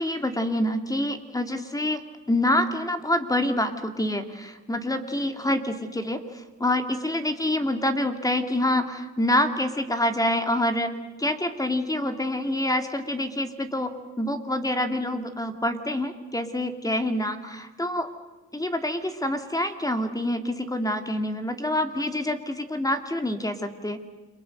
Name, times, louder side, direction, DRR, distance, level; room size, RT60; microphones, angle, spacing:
voice 1, 0.0-2.0 2.3-13.9 14.2-18.1 18.5-24.0, left 1 dB, 10° left, 7 dB, 2.6 m, -26 dB
30.0 x 23.0 x 6.6 m, 1.2 s
cardioid pair, 90°, 30 cm